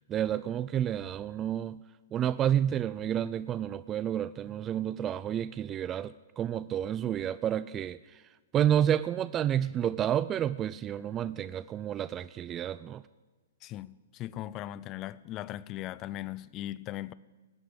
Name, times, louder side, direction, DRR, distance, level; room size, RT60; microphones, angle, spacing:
voice 1, 0.1-1.8 2.1-8.0 8.5-13.0, right 10 dB, 25° right, 0.3 m, -30 dB
voice 2, 13.6-17.1, left 14 dB, 30° left, 0.5 m, -39 dB
17.5 x 6.1 x 9.7 m
hypercardioid pair, 120°, 0 cm